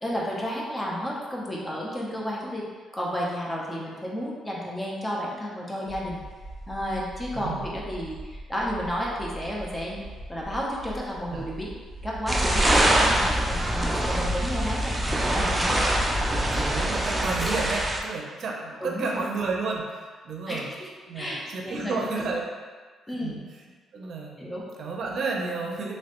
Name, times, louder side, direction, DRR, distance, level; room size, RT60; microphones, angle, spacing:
voice 1, 0.0-2.6 2.9-6.2 6.7-11.7 12.0-15.0 15.2-16.2 18.8-19.2 20.5-20.9 21.1-21.9 23.1-23.4 24.4-24.7, equal, 15° left, -4 dB, 0.8 m, -32 dB
sound 1, 5.8-17.0, right 2 dB, 55° left, 1.5 m, -42 dB
voice 2, 7.3-7.7 11.3-11.5 16.3-20.7 21.1-22.5 23.2-23.6 23.9-24.5 24.8-25.9, right 4 dB, 60° right, 0 dB, 0.6 m, -32 dB
sound 2, 12.3-18.0, right 1 dB, 15° right, 0.5 m, -24 dB
3.1 x 3.0 x 3.0 m, 1.5 s
cardioid pair, 90°, 0 cm